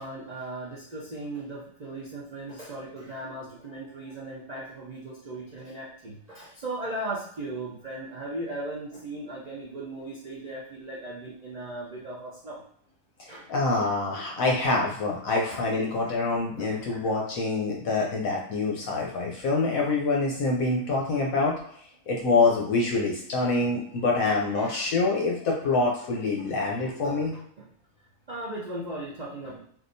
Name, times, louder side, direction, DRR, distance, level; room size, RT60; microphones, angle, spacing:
voice 1, 0.0-12.6 13.3-13.5 15.5-15.6 16.5-17.1 24.5-24.9 26.4-26.5 26.8-27.7 28.3-29.6, right 2 dB, 85° right, -6 dB, 0.3 m, -38 dB
voice 2, 13.5-21.5 22.1-27.3, left 3 dB, 65° left, -2 dB, 0.9 m, -26 dB
3.6 x 2.6 x 2.6 m, 0.65 s
omnidirectional pair, 1.7 m